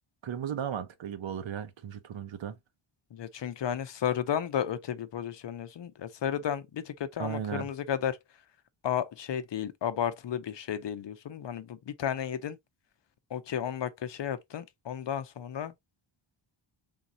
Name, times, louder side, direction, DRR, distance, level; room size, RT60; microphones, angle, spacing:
voice 1, 0.2-2.6 7.2-7.7, right 8 dB, 65° right, 0.9 m, -35 dB
voice 2, 3.1-8.2 8.8-12.6 13.3-15.7, left 9 dB, 60° left, 0.7 m, -33 dB
4.0 x 3.8 x 2.8 m
wide cardioid pair, 140°, 49 cm